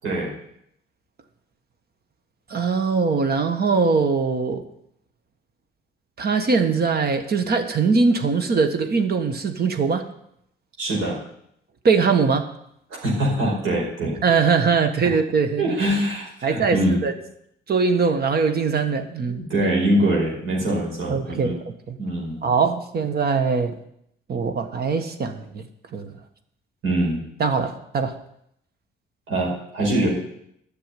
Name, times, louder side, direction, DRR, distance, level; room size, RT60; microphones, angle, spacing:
voice 1, 0.0-0.3 10.8-11.2 13.0-14.2 15.6-17.0 19.2-21.6 22.0-22.5 26.8-27.2 29.3-30.1, right 1 dB, 80° right, -3 dB, 5.2 m, -23 dB
voice 2, 2.5-4.6 6.2-10.0 11.8-12.5 14.2-15.7 16.4-17.1 17.7-19.4 21.1-22.0 22.4-23.7 24.3-25.6 25.9-26.1 27.4-28.2, right 5 dB, 50° right, 8 dB, 1.5 m, -21 dB
10.5 x 6.9 x 9.3 m, 0.74 s
cardioid pair, 90°, 20 cm